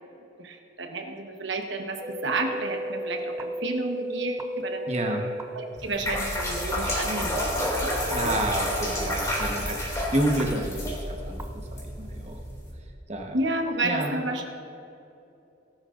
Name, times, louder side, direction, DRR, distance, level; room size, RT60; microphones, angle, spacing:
voice 1, 0.4-5.1 5.5-8.4 8.9-9.2 13.3-14.5, right 2 dB, 70° right, 3 dB, 1.2 m, -31 dB
sound 1, 2.0-5.4 6.4-6.5 7.4-7.5 8.4-8.5 9.4-9.5 10.4-10.5 11.4-11.5, equal, 15° right, 0.5 m, -33 dB
voice 2, 4.9-5.3 8.1-11.0 11.2-11.4 11.7-12.4 13.1-13.4 13.8-14.2, right 1 dB, 35° right, 2 dB, 1.2 m, -29 dB
sound 2, 5.8-12.7, left 1 dB, 20° left, 2.6 m, -30 dB
18.0 x 12.0 x 2.6 m, 2.8 s
head